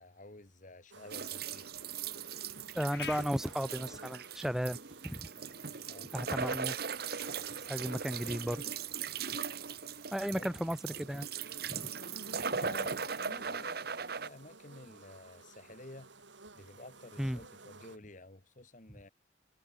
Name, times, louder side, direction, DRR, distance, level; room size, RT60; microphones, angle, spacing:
voice 1, 0.0-1.7 5.9-6.1 10.3-10.6 12.4-16.1 16.5-19.1, left 2 dB, 45° left, 2.0 m, -51 dB
sound 1, 0.9-18.0, right 3 dB, 90° right, 5.8 m, -54 dB
sound 2, 1.1-14.3, right 6 dB, 55° right, 1.2 m, -39 dB
sound 3, 2.2-16.3, left 7 dB, 60° left, 2.1 m, -56 dB
voice 2, 2.7-4.8 5.0-5.3 6.1-6.8 7.7-8.6 10.1-11.3 11.7-11.9 12.3-12.4 17.2-17.4, equal, ahead, 0.6 m, -34 dB
head